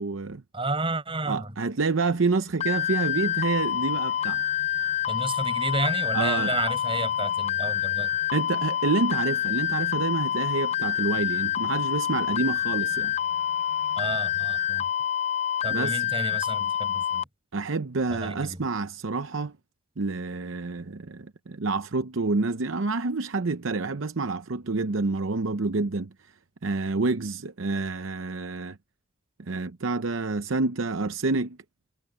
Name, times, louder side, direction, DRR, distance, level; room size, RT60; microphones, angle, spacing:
voice 1, 0.0-0.4 1.3-4.4 6.1-6.5 8.3-13.1 15.7-16.1 17.5-19.5 20.0-26.1 26.6-28.8 29.4-31.6, right 3 dB, 65° right, 0.7 m, -28 dB
voice 2, 0.5-1.5 5.1-8.2 14.0-14.8 15.6-17.3 18.1-18.6, right 2 dB, 25° right, 6.6 m, -31 dB
sound 1, 2.1-14.7, left 2 dB, 90° left, 7.0 m, -52 dB
sound 2, 2.6-17.2, left 10 dB, 30° left, 0.5 m, -27 dB
head